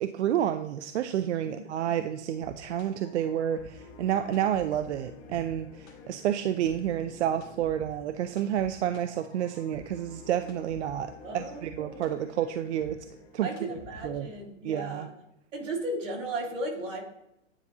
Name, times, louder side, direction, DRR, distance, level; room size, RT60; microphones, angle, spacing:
voice 1, 0.0-13.0 13.3-13.5 14.0-14.3 14.6-15.1, right 10 dB, 65° right, 10 dB, 0.5 m, -30 dB
voice 2, 1.5-1.9 11.2-12.0 13.4-15.1 15.5-17.0, right 1 dB, 85° right, -1 dB, 2.6 m, -35 dB
sound 1, 2.2-14.4, left 3 dB, 25° left, 1.1 m, -49 dB
9.8 x 4.0 x 2.7 m, 0.83 s
hypercardioid pair, 155°, 37 cm